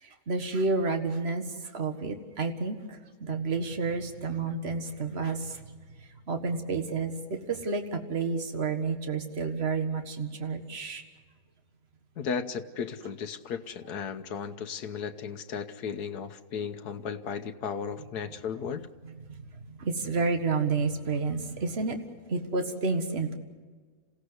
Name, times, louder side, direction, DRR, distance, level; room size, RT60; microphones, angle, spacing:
voice 1, 0.0-11.0 19.3-22.0 22.3-23.3, right 4 dB, 40° right, 6 dB, 1.9 m, -30 dB
voice 2, 12.2-18.9, left 6 dB, 90° left, 7 dB, 1.5 m, -35 dB
27.5 x 16.5 x 8.0 m, 1.5 s
omnidirectional pair, 1.6 m